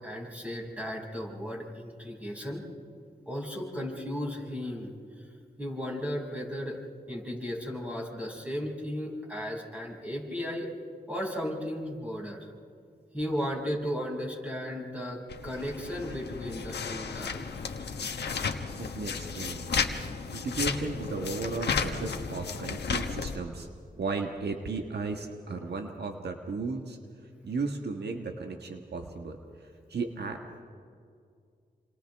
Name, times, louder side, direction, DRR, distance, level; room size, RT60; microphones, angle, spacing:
voice 1, 0.0-2.6 3.3-4.9 5.2-5.3 5.6-6.8 7.1-10.7 11.1-12.4 13.1-17.8, equal, 10° right, -3 dB, 6.5 m, -35 dB
sound 1, 15.3-23.4, left 5 dB, 85° left, 1.3 m, -33 dB
voice 2, 18.8-19.8 20.3-23.7 23.9-27.0 27.4-30.4, right 3 dB, 80° right, 4 dB, 1.5 m, -35 dB
28.5 x 27.0 x 3.6 m, 2.2 s
cardioid pair, 60°, 17 cm